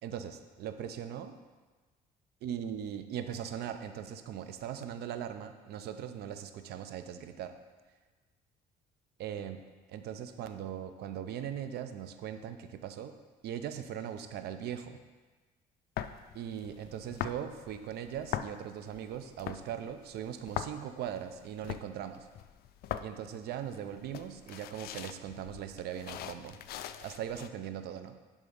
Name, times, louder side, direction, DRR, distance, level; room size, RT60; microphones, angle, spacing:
voice 1, 0.0-1.4 2.4-7.5 9.2-9.6 9.9-13.1 13.4-15.0 16.3-22.3 23.0-26.6 27.0-28.1, right 9 dB, 70° right, 9 dB, 0.7 m, -40 dB
sound 1, 16.0-27.5, left 11 dB, 65° left, 0.4 m, -42 dB
11.0 x 3.7 x 5.3 m, 1.3 s
cardioid pair, 110°, 17 cm